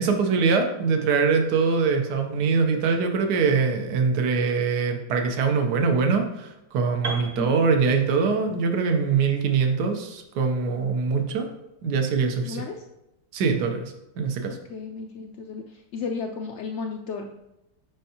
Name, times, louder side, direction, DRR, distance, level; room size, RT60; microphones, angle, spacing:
voice 1, 0.0-11.5 11.8-12.6 13.3-14.6, right 5 dB, 80° right, 5 dB, 1.4 m, -23 dB
Piano, 7.0-11.0, right 2 dB, 50° right, 1.1 m, -39 dB
voice 2, 12.4-12.8 14.5-17.3, left 5 dB, 85° left, 4 dB, 0.6 m, -34 dB
6.9 x 5.4 x 2.8 m, 0.93 s
omnidirectional pair, 1.8 m